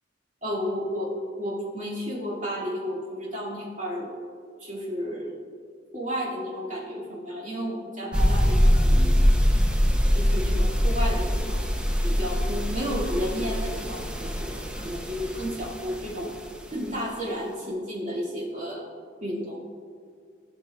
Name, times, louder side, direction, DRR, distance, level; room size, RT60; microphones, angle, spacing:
voice 1, 0.4-4.1 4.6-5.3 5.9-9.2 10.1-11.6 12.0-16.3 16.7-18.8 19.2-19.6, equal, 40° right, -5 dB, 1.9 m, -32 dB
sound 1, 8.1-16.5, equal, 5° right, 0.5 m, -23 dB
14.5 x 6.1 x 2.2 m, 2.1 s
head